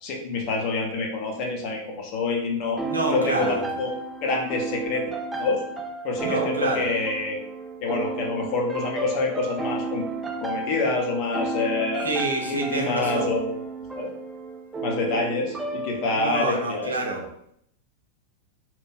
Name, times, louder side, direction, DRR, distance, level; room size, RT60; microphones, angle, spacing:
voice 1, 0.0-2.8 3.1-3.9 4.2-5.1 5.4-5.6 6.0-7.4 7.8-10.0 10.4-12.1 12.5-13.5 13.9-14.1 14.8-16.9, left 3 dB, 40° left, 1 dB, 0.7 m, -27 dB
sound 1, 2.8-16.5, right 3 dB, 10° right, 0.3 m, -33 dB
voice 2, 2.8-3.7 6.2-6.9 12.0-13.3 16.1-17.2, right 2 dB, 75° right, 1 dB, 0.5 m, -27 dB
2.9 x 2.6 x 2.3 m, 0.72 s
figure-of-eight pair, 90°, 0 cm